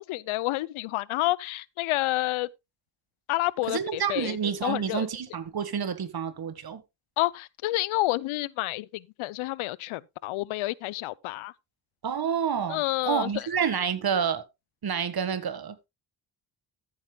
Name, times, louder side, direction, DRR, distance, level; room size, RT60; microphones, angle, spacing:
voice 1, 0.0-2.5 3.3-4.4 4.6-5.1 7.2-11.5 12.7-13.3, left 18 dB, 85° left, 0.6 m, -29 dB
voice 2, 3.7-6.8 12.0-14.4 14.8-15.7, right 7 dB, 50° right, 1.5 m, -29 dB
14.0 x 9.1 x 2.2 m
cardioid pair, 70°, 47 cm